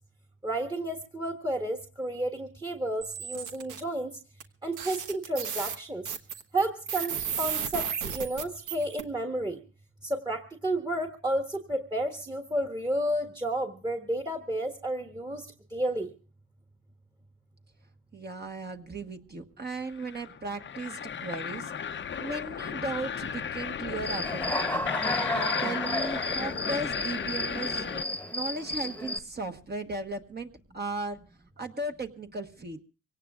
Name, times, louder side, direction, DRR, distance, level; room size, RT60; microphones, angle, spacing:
voice 1, 0.4-4.1 4.6-6.1 6.5-9.6 10.0-15.4 15.7-16.1, right 1 dB, 15° right, 4 dB, 1.5 m, -31 dB
sound 1, 3.0-3.8 4.4-4.5 4.7-9.0, right 8 dB, 80° right, 1.3 m, -34 dB
voice 2, 18.1-21.7 22.2-24.9 25.3-27.9 28.3-31.2 31.6-32.8, right 2 dB, 35° right, 4 dB, 1.4 m, -36 dB
sound 2, 19.9-28.0, left 7 dB, 40° left, 0.8 m, -35 dB
Human voice / Cricket, 24.0-29.2, left 1 dB, 5° left, 1.3 m, -32 dB
24.5 x 18.0 x 2.4 m, 0.34 s
cardioid pair, 90°, 30 cm